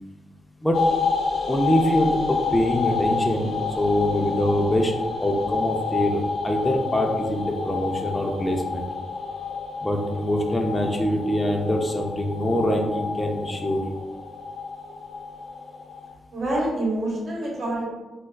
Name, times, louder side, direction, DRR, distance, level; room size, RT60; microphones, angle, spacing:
sound 1, 0.7-16.1, left 5 dB, 60° left, 0.8 m, -29 dB
voice 1, 1.5-4.9 5.2-8.8 9.8-13.8, equal, 10° left, 1 dB, 0.3 m, -24 dB
voice 2, 16.3-17.9, right 1 dB, 55° right, -3 dB, 0.9 m, -26 dB
4.7 x 2.2 x 2.3 m, 1.2 s
wide cardioid pair, 155°, 0 cm